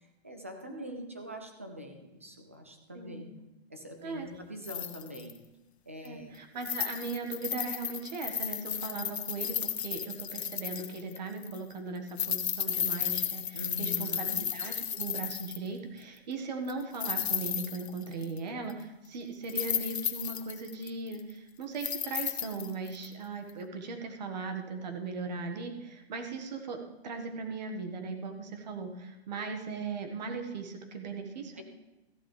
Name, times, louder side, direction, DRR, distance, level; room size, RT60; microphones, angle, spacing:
voice 1, 0.0-3.3 3.7-5.3 5.9-6.3 13.5-14.5 31.6-31.7, equal, 15° right, 5 dB, 0.4 m, -43 dB
voice 2, 2.9-3.3 4.0-4.3 6.0-26.8 27.0-31.6, right 4 dB, 40° right, 5 dB, 1.6 m, -38 dB
sound 1, 4.6-5.3 6.0-6.1 6.6-11.2 11.4-11.6 12.1-15.7 16.7-18.4 18.7-18.8 19.4-21.3 21.8-23.1 23.5-23.6, left 9 dB, 85° left, 1.1 m, -34 dB
14.5 x 11.5 x 3.3 m, 0.99 s
hypercardioid pair, 170°, 32 cm